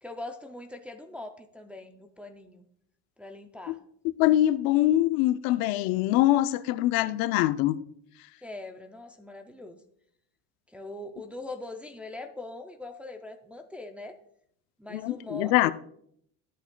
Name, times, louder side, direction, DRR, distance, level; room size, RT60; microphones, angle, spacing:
voice 1, 0.0-2.7 3.2-3.8 8.4-9.8 10.7-14.1 14.8-15.7, left 2 dB, 5° right, 0.3 m, -41 dB
voice 2, 4.0-7.8 14.9-15.7, left 14 dB, 75° left, 0.5 m, -23 dB
12.5 x 8.2 x 2.2 m
cardioid pair, 150°, 36 cm